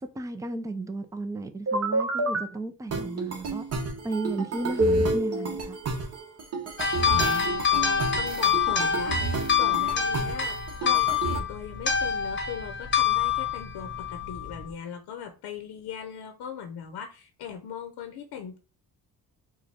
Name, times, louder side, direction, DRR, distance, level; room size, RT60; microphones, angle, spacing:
voice 1, 0.0-3.6 4.0-5.8, right 2 dB, 10° right, 0.5 m, -34 dB
sound 1, 1.7-2.4 2.9-11.4, right 2 dB, 40° right, 1.1 m, -29 dB
sound 2, 6.8-14.7, left 7 dB, 30° left, 0.9 m, -26 dB
voice 2, 7.1-18.6, left 7 dB, 90° left, 0.8 m, -39 dB
4.7 x 2.3 x 4.2 m
cardioid pair, 110°, 38 cm